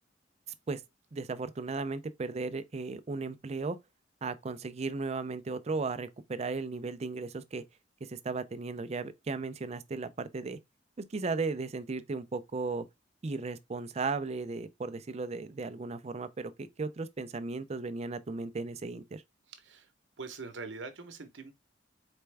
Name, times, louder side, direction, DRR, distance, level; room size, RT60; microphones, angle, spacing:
voice 1, 1.1-3.8 4.2-7.6 8.0-10.6 11.0-12.9 13.2-19.2, right 3 dB, 35° right, 0.4 m, -36 dB
voice 2, 19.5-19.9 20.2-21.5, right 4 dB, 80° right, 0.9 m, -43 dB
4.3 x 3.3 x 3.3 m
head